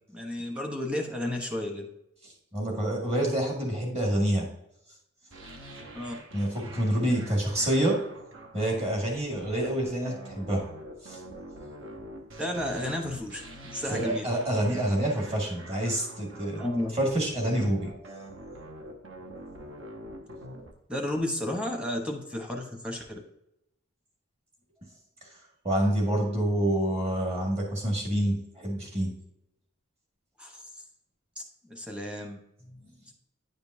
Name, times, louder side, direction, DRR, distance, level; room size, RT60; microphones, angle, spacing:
voice 1, 0.1-1.9 5.9-6.1 12.4-14.3 16.6-17.0 20.9-23.1 30.4-30.6 31.4-31.5 31.7-32.4, left 1 dB, 5° right, 3 dB, 0.9 m, -32 dB
voice 2, 2.5-4.5 6.3-8.0 8.5-10.6 11.0-11.2 13.9-16.6 17.0-17.9 25.6-29.1, right 1 dB, 30° right, 0 dB, 1.8 m, -27 dB
sound 1, 5.3-20.7, right 1 dB, 60° right, 1.0 m, -46 dB
9.6 x 5.2 x 2.7 m, 0.83 s
head